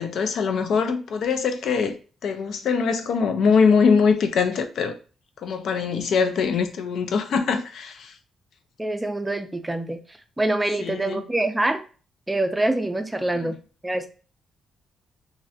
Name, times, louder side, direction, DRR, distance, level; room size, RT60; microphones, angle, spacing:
voice 1, 0.0-2.0 2.2-4.9 5.4-8.1 10.8-11.2 13.4-13.5, left 5 dB, 70° left, 0.4 m, -22 dB
voice 2, 8.8-10.0 10.4-11.8 12.3-13.6 13.8-14.1, right 2 dB, 15° right, 0.4 m, -25 dB
2.5 x 2.1 x 2.7 m
cardioid pair, 80°, 0 cm